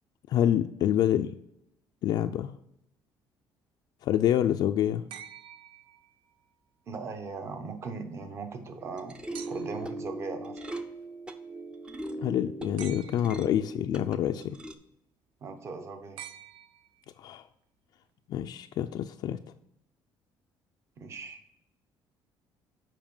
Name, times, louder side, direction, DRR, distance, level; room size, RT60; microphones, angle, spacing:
voice 1, 0.3-1.4 2.0-2.5 4.0-5.0 12.2-14.6 17.2-17.4 18.3-19.4, left 11 dB, 50° left, 7 dB, 0.3 m, -27 dB
sound 1, 5.1-6.5 9.3-10.0 12.8-13.6 16.2-17.2 18.8-18.9, right 10 dB, 70° right, 0.5 m, -47 dB
voice 2, 6.9-9.2 9.4-10.6 15.4-16.2 21.0-21.4, right 4 dB, 30° right, 7 dB, 0.9 m, -39 dB
sound 2, 8.8-14.7, right 1 dB, 10° right, 0.5 m, -39 dB
7.3 x 5.2 x 5.4 m, 0.79 s
cardioid pair, 175°, 9 cm